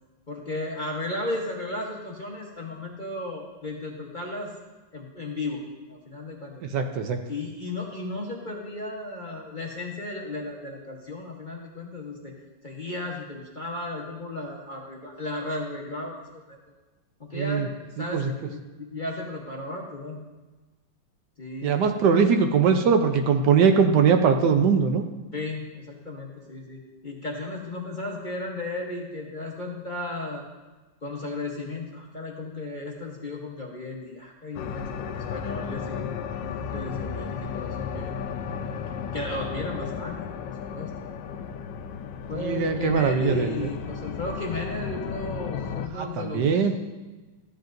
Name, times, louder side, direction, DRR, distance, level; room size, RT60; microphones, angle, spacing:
voice 1, 0.3-4.5 4.9-5.6 5.9-6.5 7.3-12.3 12.6-16.6 17.3-20.2 21.4-21.9 25.3-30.4 31.0-36.2 36.6-38.2 39.1-40.2 40.7-41.1 42.3-46.7, left 2 dB, 35° left, -2 dB, 0.9 m, -34 dB
voice 2, 6.7-7.2 17.3-17.7 18.0-18.3 21.6-25.0 42.3-43.7 45.9-46.8, right 6 dB, 70° right, 6 dB, 1.2 m, -21 dB
sound 1, 34.5-45.9, left 7 dB, 80° left, 1.2 m, -34 dB
14.0 x 9.8 x 2.6 m, 1.2 s
omnidirectional pair, 2.0 m